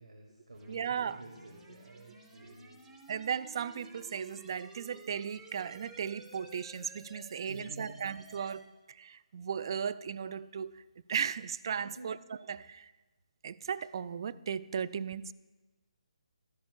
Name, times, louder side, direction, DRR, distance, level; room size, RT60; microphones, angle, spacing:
voice 1, 0.0-2.8 7.3-8.1 11.8-12.1, right 1 dB, 70° right, 1.8 m, -50 dB
sound 1, 0.5-8.5, right 2 dB, 10° right, 1.1 m, -54 dB
voice 2, 0.7-1.2 3.1-10.8 11.1-12.2 12.5-12.9 13.4-15.3, right 7 dB, 40° right, 0.3 m, -36 dB
15.0 x 12.5 x 2.2 m
figure-of-eight pair, 145°, 4 cm